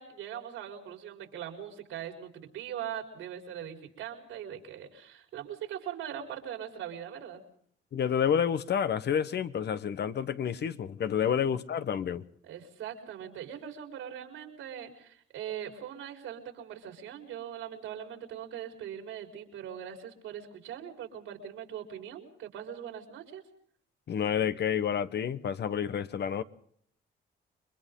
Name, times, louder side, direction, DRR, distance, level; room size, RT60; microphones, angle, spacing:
voice 1, 0.0-7.4 12.4-23.4, right 9 dB, 90° right, 4.7 m, -41 dB
voice 2, 7.9-12.2 24.1-26.4, left 8 dB, 60° left, 1.3 m, -29 dB
30.0 x 22.5 x 3.8 m
cardioid pair, 90°, 20 cm